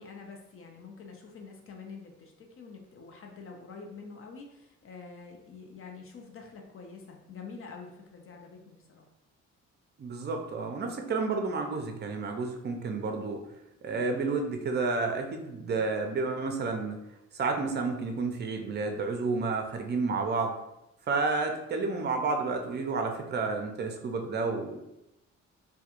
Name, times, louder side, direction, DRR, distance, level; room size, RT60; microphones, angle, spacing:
voice 1, 0.0-9.1, left 4 dB, 45° left, 2 dB, 0.5 m, -46 dB
voice 2, 10.0-13.4 13.8-17.0 17.3-20.5 21.1-24.8, right 4 dB, 35° right, 4 dB, 0.5 m, -30 dB
2.3 x 2.2 x 2.9 m, 0.90 s
cardioid pair, 90°, 30 cm